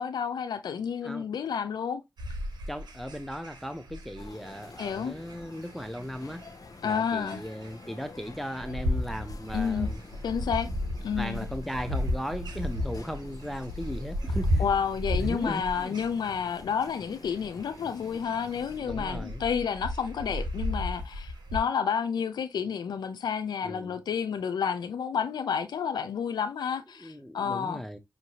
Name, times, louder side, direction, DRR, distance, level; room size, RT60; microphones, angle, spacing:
voice 1, 0.0-2.0 4.8-5.1 6.8-7.4 9.5-9.9 10.2-10.7 11.0-11.5 14.6-27.8, left 7 dB, 85° left, 0.4 m, -30 dB
sound 1, 2.2-21.6, left 1 dB, 80° right, 0.9 m, -34 dB
voice 2, 2.7-6.4 6.8-10.0 11.2-14.6 15.1-16.0 18.8-19.4 23.6-24.0 27.0-28.0, equal, ahead, 0.6 m, -37 dB
sound 2, 4.2-18.8, left 3 dB, 60° left, 0.7 m, -49 dB
5.5 x 2.6 x 2.8 m
cardioid pair, 40°, 7 cm